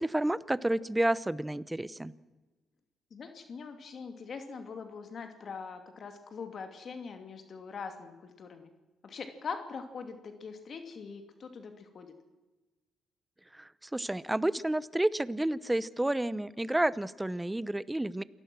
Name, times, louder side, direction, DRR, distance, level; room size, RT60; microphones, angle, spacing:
voice 1, 0.0-2.1 13.5-18.2, right 1 dB, 10° right, 18 dB, 0.8 m, -30 dB
voice 2, 3.1-8.7 9.0-12.1, left 5 dB, 50° left, 6 dB, 2.5 m, -42 dB
28.0 x 18.5 x 6.2 m, 1.2 s
cardioid pair, 90°, 0 cm